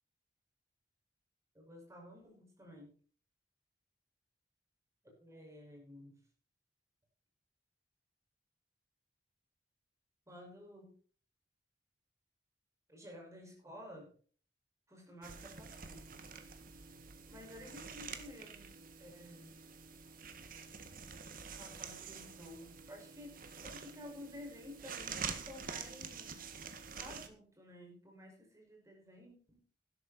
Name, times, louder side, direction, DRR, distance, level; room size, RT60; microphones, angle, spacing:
voice 1, 1.5-2.9 5.0-6.2 10.3-10.9 12.9-14.1 14.9-16.1 17.3-19.5 21.6-26.5 26.9-29.6, left 1 dB, 15° right, 0 dB, 5.9 m, -53 dB
sound 1, 15.2-27.3, right 6 dB, 55° right, 1.8 m, -47 dB
12.5 x 12.0 x 4.3 m, 0.43 s
head